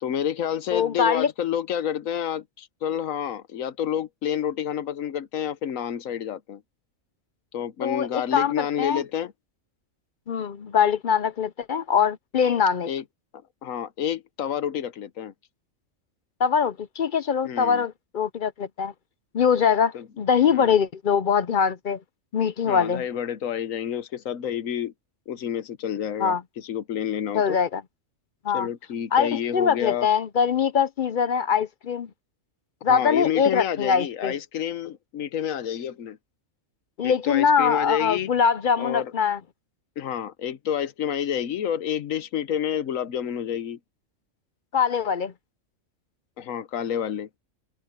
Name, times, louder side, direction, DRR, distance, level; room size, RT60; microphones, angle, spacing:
voice 1, 0.0-6.6 7.5-9.3 12.9-13.0 13.6-15.3 17.4-17.8 19.9-20.1 20.5-20.8 22.6-24.9 25.3-27.6 28.5-30.1 32.9-36.2 37.0-38.3 38.8-39.1 40.0-43.8 46.4-47.3, left 9 dB, 80° left, 1.3 m, -29 dB
voice 2, 0.7-1.3 7.8-9.0 10.3-12.9 16.4-18.9 19.3-22.0 22.3-23.0 26.2-26.4 27.3-27.8 28.4-28.7 29.1-32.1 32.8-34.3 37.0-39.4 44.7-45.3, left 7 dB, 55° left, 0.6 m, -23 dB
omnidirectional pair, 1.4 m